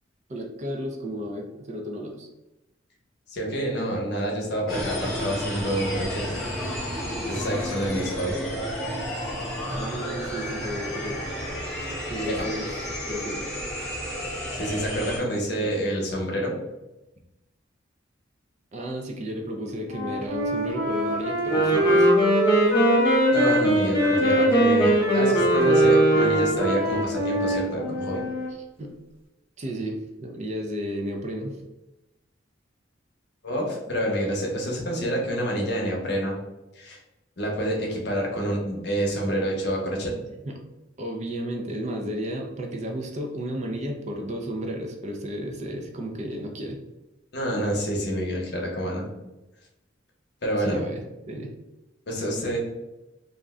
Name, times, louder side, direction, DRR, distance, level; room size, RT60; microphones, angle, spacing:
voice 1, 0.3-2.3 8.0-8.4 9.8-11.2 12.1-13.5 18.7-22.1 28.8-29.0 29.6-31.6 40.5-40.6 41.0-46.8 50.6-51.0 51.3-51.5, equal, 35° right, 2 dB, 0.4 m, -33 dB
voice 2, 3.3-6.2 7.2-8.4 12.3-12.4 14.5-16.5 23.3-28.2 33.4-36.4 36.8-37.0 37.4-40.1 47.3-49.1 50.4-50.8 52.1-52.6, equal, 55° left, -1 dB, 0.8 m, -28 dB
sound 1, 4.7-15.2, equal, ahead, 0.9 m, -31 dB
Wind instrument woodwind instrument, 19.9-23.7 24.0-28.5, equal, 85° right, 1.0 m, -24 dB
Wind instrument woodwind instrument 2, 21.4-26.7, right 1 dB, 20° left, 0.5 m, -21 dB
2.5 x 2.1 x 3.5 m, 0.99 s
head